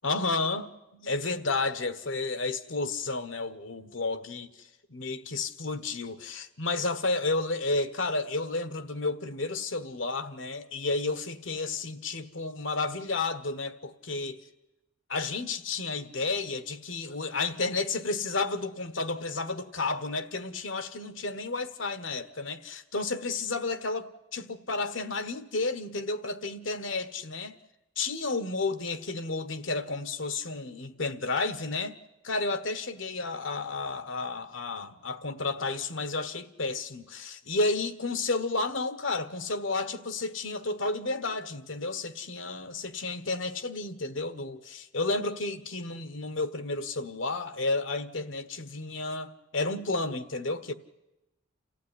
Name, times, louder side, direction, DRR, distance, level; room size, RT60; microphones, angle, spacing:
voice 1, 0.0-14.4 15.1-27.6 28.0-32.0 32.2-50.7, left 3 dB, 75° left, 1.4 m, -32 dB
28.5 x 15.0 x 10.0 m
head